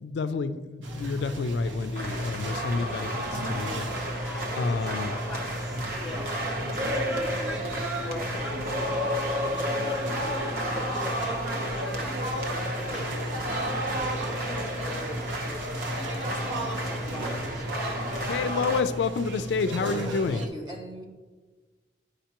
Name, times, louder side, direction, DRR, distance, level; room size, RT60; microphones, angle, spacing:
voice 1, 0.0-3.1 3.5-3.9 4.6-5.1 18.3-20.4, left 4 dB, 70° left, 12 dB, 0.3 m, -29 dB
sound 1, 0.8-20.5, equal, 90° right, 0.9 m, -34 dB
sound 2, 1.9-18.8, equal, 50° right, 0.9 m, -32 dB
voice 2, 4.2-8.6 9.5-10.2 10.7-12.2 12.9-13.8 14.2-18.1, left 1 dB, ahead, -1 dB, 1.2 m, -43 dB
sound 3, 6.1-6.2 6.5-6.9 8.2-8.6 9.2-10.3 10.6-10.9 11.6-11.8, left 1 dB, 35° left, 0.8 m, -49 dB
voice 3, 16.8-17.4 19.8-21.0, equal, 25° right, -2 dB, 1.3 m, -39 dB
10.0 x 5.1 x 2.9 m, 1.3 s
head